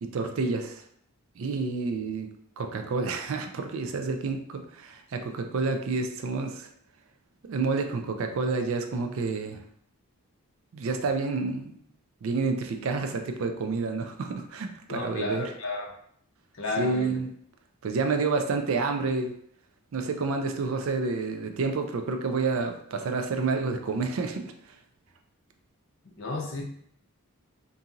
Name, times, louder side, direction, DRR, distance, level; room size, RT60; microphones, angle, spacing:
voice 1, 0.0-0.8 1.4-2.3 2.6-6.7 7.4-9.6 10.7-11.8 12.2-15.5 16.8-17.3 17.8-19.3 19.9-24.4, right 4 dB, 65° right, 5 dB, 0.3 m, -29 dB
voice 2, 14.9-15.9 16.6-17.2 26.2-26.6, left 2 dB, 55° left, -1 dB, 0.6 m, -32 dB
2.8 x 2.6 x 2.4 m, 0.66 s
head